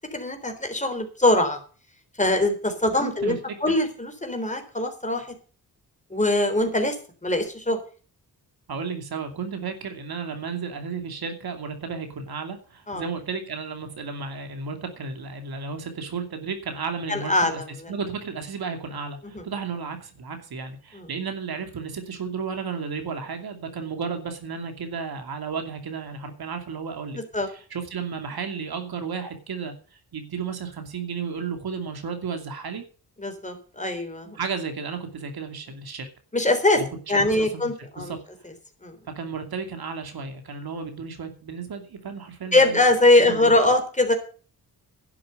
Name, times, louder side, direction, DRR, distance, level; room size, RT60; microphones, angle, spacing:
voice 1, 0.1-1.6 2.2-5.3 6.1-7.0 7.2-7.8 12.9-13.0 17.1-17.7 19.3-19.4 20.9-21.1 27.1-27.5 33.2-34.4 36.3-36.8 37.1-38.1 38.8-38.9 42.5-44.1, left 2 dB, 20° left, 5 dB, 3.7 m, -22 dB
voice 2, 3.0-3.4 8.7-17.5 17.9-27.2 27.5-29.7 30.1-32.8 34.3-36.1 36.8-37.7 38.0-38.2 39.1-42.8 43.3-43.5, right 5 dB, 70° right, 6 dB, 2.6 m, -33 dB
11.5 x 7.6 x 7.9 m, 0.39 s
cardioid pair, 75°, 39 cm